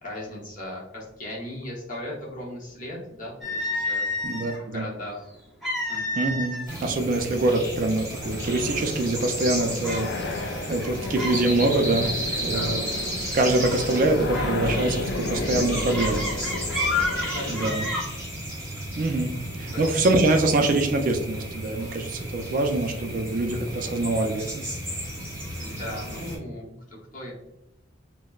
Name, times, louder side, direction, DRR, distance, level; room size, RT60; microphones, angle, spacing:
voice 1, 0.0-5.3 5.9-6.0 12.3-12.9 17.2-17.8 19.7-19.9 25.6-27.3, left 1 dB, 40° left, -4 dB, 1.0 m, -37 dB
sound 1, 3.4-4.6 5.6-6.8 7.1-7.3 8.0-8.1 8.6-9.1 9.8-10.1 10.7-11.4 11.7-12.0 13.5-13.8 14.3-18.0, left 2 dB, ahead, 0.7 m, -30 dB
voice 2, 4.2-4.8 6.2-12.1 12.4-12.8 13.3-16.2 17.5-17.8 19.0-24.5, right 2 dB, 45° right, 5 dB, 0.3 m, -24 dB
sound 2, 6.7-26.4, right 1 dB, 15° right, 0.9 m, -33 dB
sound 3, 8.2-18.0, left 3 dB, 60° left, 0.3 m, -33 dB
4.0 x 2.0 x 2.3 m, 0.89 s
head